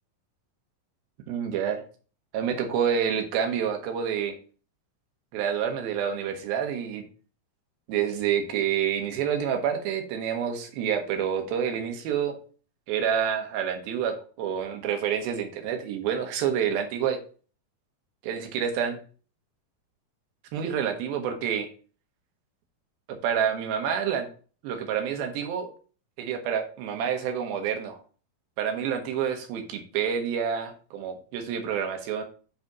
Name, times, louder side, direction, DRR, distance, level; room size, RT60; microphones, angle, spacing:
voice 1, 1.3-1.8 2.3-4.3 5.3-7.0 7.9-12.4 12.9-17.2 18.2-19.0 20.5-21.7 23.2-24.3 24.6-25.7 26.2-28.0 28.6-32.2, right 8 dB, 80° right, 4 dB, 2.9 m, -28 dB
7.9 x 2.8 x 6.0 m, 0.39 s
omnidirectional pair, 4.3 m